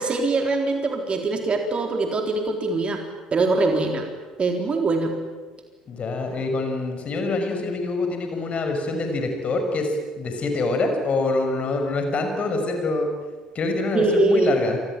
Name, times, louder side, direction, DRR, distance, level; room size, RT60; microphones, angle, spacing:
voice 1, 0.0-3.0 3.3-4.1 4.4-5.1 13.9-14.5, right 3 dB, 30° right, 4 dB, 3.9 m, -22 dB
voice 2, 5.9-13.1 13.5-14.8, left 3 dB, 40° left, 4 dB, 6.2 m, -25 dB
27.5 x 23.0 x 9.1 m, 1.4 s
figure-of-eight pair, 55°, 3 cm